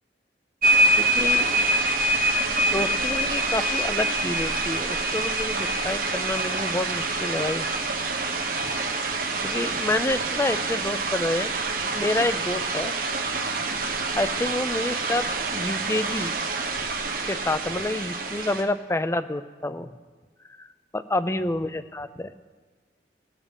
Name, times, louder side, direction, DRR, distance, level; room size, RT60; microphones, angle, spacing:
sound 1, 0.6-18.6, right 2 dB, 50° right, 1.2 m, -26 dB
voice 1, 1.0-1.5 2.7-7.7 9.4-11.5 11.9-12.9 14.2-16.3 17.1-19.9 20.6-20.7 20.9-22.3, left 2 dB, 15° left, 12 dB, 0.5 m, -28 dB
18.0 x 7.4 x 5.2 m, 1.4 s
head